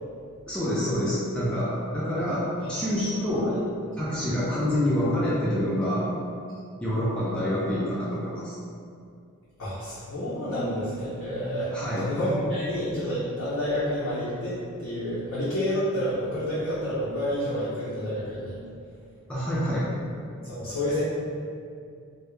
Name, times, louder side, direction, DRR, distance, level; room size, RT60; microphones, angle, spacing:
voice 1, 0.5-3.5 4.0-6.1 6.8-8.5 11.7-12.1 19.3-19.9, equal, 5° left, -9 dB, 0.3 m, -27 dB
voice 2, 2.6-3.5 9.6-11.7 12.0-18.6 20.4-21.0, equal, 60° left, -10 dB, 0.5 m, -29 dB
2.1 x 2.0 x 3.0 m, 2.3 s
head